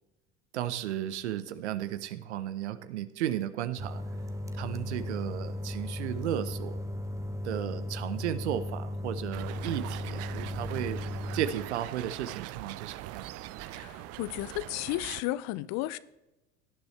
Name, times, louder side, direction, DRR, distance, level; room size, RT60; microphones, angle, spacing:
voice 1, 0.5-4.0 4.5-6.8 7.4-11.0 11.3-13.3, right 11 dB, 70° right, 0.9 m, -34 dB
sound 1, 3.8-11.5, left 1 dB, 10° right, 0.9 m, -36 dB
sound 2, 9.3-15.2, right 15 dB, 45° right, 0.6 m, -42 dB
voice 2, 13.7-16.0, left 16 dB, 50° left, 0.6 m, -33 dB
18.0 x 10.5 x 3.3 m
figure-of-eight pair, 70°, 35 cm